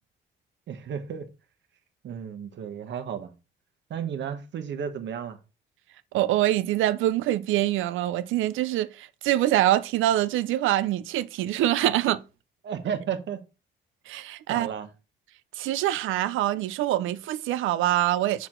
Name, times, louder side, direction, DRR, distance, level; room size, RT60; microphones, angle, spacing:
voice 1, 0.7-1.3 2.0-3.3 3.9-5.4 12.6-13.4 14.5-14.9, right 8 dB, 65° right, 1.2 m, -33 dB
voice 2, 6.1-12.2 14.1-14.7 15.6-18.5, right 13 dB, 85° right, 0.5 m, -25 dB
6.0 x 4.5 x 3.7 m
cardioid pair, 90°, 20 cm